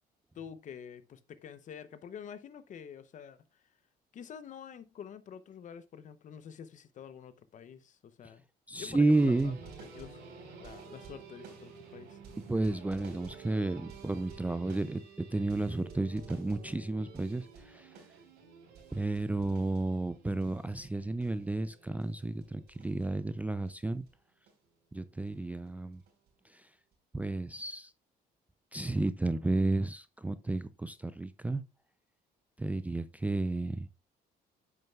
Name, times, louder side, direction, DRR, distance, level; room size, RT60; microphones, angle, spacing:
voice 1, 0.3-3.6 4.1-8.4 8.8-9.5 9.8-10.2 10.6-12.2, left 8 dB, 50° left, 0.7 m, -47 dB
voice 2, 8.7-9.6 12.5-17.9 18.9-24.1 24.9-26.0 26.5-26.7 27.1-27.9 28.7-31.6 32.6-33.9, right 2 dB, 10° right, 0.4 m, -32 dB
sound 1, 9.1-23.7 24.1-24.2 24.5-24.6 25.3-25.4 25.7-26.3 26.9-27.0, right 5 dB, 90° right, 3.4 m, -51 dB
8.7 x 6.5 x 2.3 m
cardioid pair, 110°, 17 cm